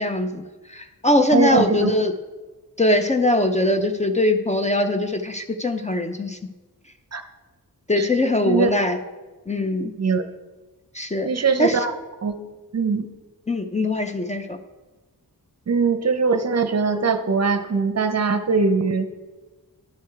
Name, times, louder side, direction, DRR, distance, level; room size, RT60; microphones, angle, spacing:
voice 1, 0.0-2.1 2.8-6.4 7.9-9.0 9.5-9.9 10.9-11.8 13.5-14.6, left 1 dB, 20° left, 6 dB, 0.4 m, -22 dB
voice 2, 1.3-1.9 7.1-7.2 8.0-8.1 8.5-8.7 10.0-10.2 11.2-11.9 12.2-12.4 12.7-13.1 15.7-19.1, right 4 dB, 45° right, 8 dB, 0.6 m, -21 dB
11.5 x 4.7 x 4.6 m, 1.2 s
wide cardioid pair, 115°, 35 cm